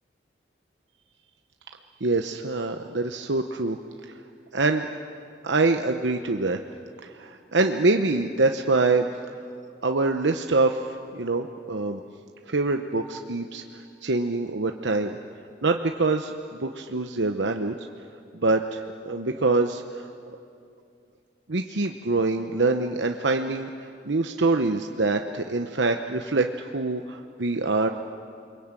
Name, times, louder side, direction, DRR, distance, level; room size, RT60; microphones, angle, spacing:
voice 1, 2.0-3.8 4.0-4.2 4.5-4.9 5.4-6.6 7.0-9.1 9.8-12.0 12.5-15.2 15.6-17.7 18.3-20.1 21.5-27.9, right 3 dB, 80° right, 5 dB, 0.9 m, -25 dB
29.0 x 22.5 x 9.0 m, 2.5 s
head